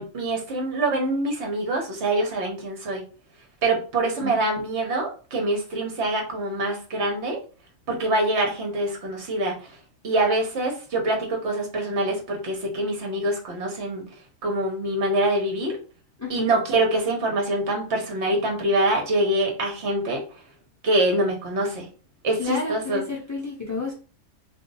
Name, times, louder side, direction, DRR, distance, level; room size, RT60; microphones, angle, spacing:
voice 1, 0.0-3.0 3.6-7.4 7.9-9.7 10.0-14.0 14.4-15.8 16.3-20.2 20.8-21.9 22.2-23.0, right 1 dB, 60° right, 1 dB, 1.1 m, -25 dB
voice 2, 16.2-16.5 22.4-23.9, left 3 dB, 25° left, -3 dB, 0.4 m, -30 dB
2.6 x 2.3 x 3.8 m, 0.37 s
omnidirectional pair, 1.4 m